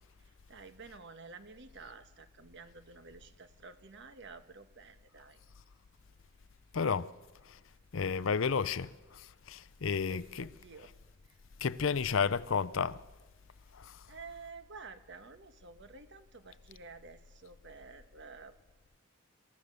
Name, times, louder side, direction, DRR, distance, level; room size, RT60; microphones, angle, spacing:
voice 1, 0.2-5.4 9.8-10.9 11.3-11.4 11.9-12.2 14.1-18.6, right 4 dB, 60° right, 1.3 m, -51 dB
voice 2, 6.7-7.1 7.5-7.6 7.9-10.5 11.6-13.0 13.7-14.0, left 5 dB, 70° left, 0.6 m, -32 dB
27.0 x 15.0 x 6.9 m
head